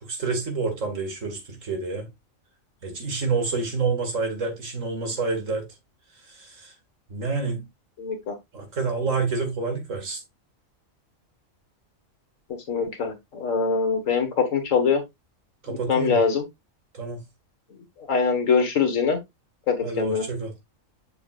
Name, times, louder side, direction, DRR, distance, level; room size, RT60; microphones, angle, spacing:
voice 1, 0.0-2.1 2.8-5.7 6.3-6.7 7.1-7.7 8.5-10.2 15.6-16.2 16.9-17.2 19.8-20.5, right 4 dB, 70° right, 2.4 m, -28 dB
voice 2, 8.0-8.3 12.7-15.0 15.7-16.4 18.1-19.2 19.7-20.2, left 5 dB, 70° left, 1.9 m, -23 dB
7.1 x 6.0 x 2.4 m
omnidirectional pair, 1.4 m